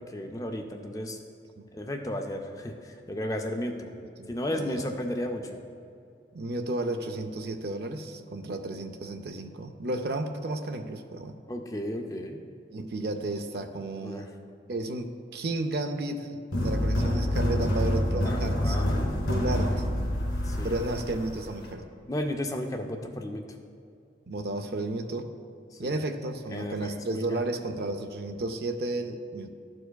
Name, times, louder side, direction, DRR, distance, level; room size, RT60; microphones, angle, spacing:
voice 1, 0.1-1.2 1.7-3.9 4.3-5.6 11.5-12.4 14.0-14.3 18.2-19.1 20.4-20.8 22.1-23.4 25.7-26.0 26.5-27.4, left 1 dB, 20° left, 3 dB, 0.4 m, -34 dB
voice 2, 4.2-5.0 6.3-11.4 12.7-14.3 14.7-18.8 19.3-19.8 20.6-21.9 24.3-25.3 25.8-29.5, right 2 dB, 60° right, 6 dB, 0.4 m, -33 dB
sound 1, 16.5-21.7, left 1 dB, 85° left, 1.5 m, -27 dB
12.5 x 4.5 x 2.3 m, 2.4 s
head